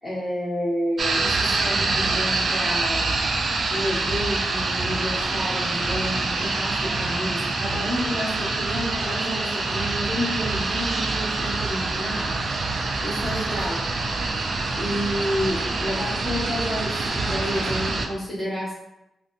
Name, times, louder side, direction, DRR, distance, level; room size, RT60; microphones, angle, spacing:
voice 1, 0.0-3.1 3.7-12.3 13.0-13.8 14.8-18.7, equal, 15° left, -9 dB, 1.3 m, -30 dB
sound 1, 1.0-18.1, right 3 dB, 45° right, 0.3 m, -26 dB
3.9 x 2.2 x 2.5 m, 0.89 s
wide cardioid pair, 135°, 0 cm